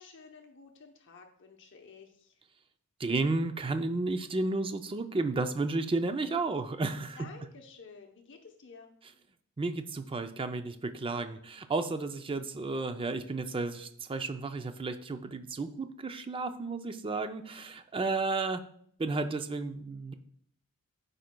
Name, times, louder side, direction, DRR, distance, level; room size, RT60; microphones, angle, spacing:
voice 1, 0.0-2.3 7.0-8.9, left 4 dB, 60° left, 3 dB, 0.8 m, -52 dB
voice 2, 3.0-7.2 9.6-18.6 19.0-20.1, right 3 dB, 25° right, 9 dB, 0.4 m, -32 dB
13.0 x 5.1 x 2.2 m, 0.64 s
head